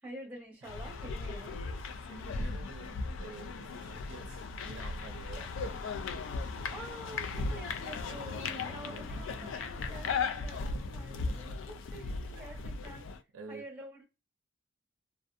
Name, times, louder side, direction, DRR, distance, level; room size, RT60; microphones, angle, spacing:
voice 1, 0.0-1.6 6.7-13.0 13.5-14.0, right 1 dB, 10° right, 0.9 m, -47 dB
sound 1, 0.6-13.2, left 4 dB, 75° left, 0.3 m, -37 dB
voice 2, 2.1-6.3 8.1-8.4 8.8-9.5 13.3-13.6, right 4 dB, 85° right, 0.5 m, -50 dB
2.5 x 2.1 x 2.4 m
head